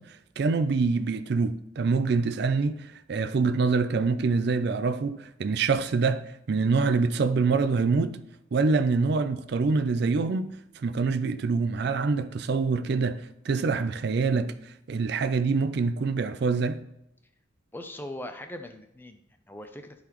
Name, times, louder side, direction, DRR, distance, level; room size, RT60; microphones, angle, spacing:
voice 1, 0.0-8.2 8.5-16.8, right 4 dB, 55° right, 0.4 m, -25 dB
voice 2, 17.7-20.0, left 1 dB, 10° left, 0.5 m, -40 dB
11.5 x 4.0 x 3.0 m
head